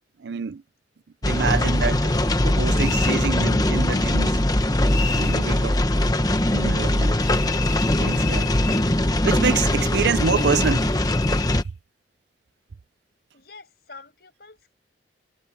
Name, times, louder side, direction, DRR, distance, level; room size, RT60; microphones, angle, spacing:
voice 1, 0.2-0.6 1.2-2.2 2.4-4.4 5.1-5.8 6.5-7.2 8.0-8.5 9.2-10.9, right 6 dB, 65° right, 0.5 m, -26 dB
sound 1, 1.2-11.6, left 1 dB, 20° left, 1.1 m, -21 dB
sound 2, 2.8-3.2 4.9-5.5 7.2-8.9 10.2-11.6, left 8 dB, 75° left, 2.6 m, -33 dB
voice 2, 13.3-14.8, left 4 dB, 55° left, 6.8 m, -46 dB
head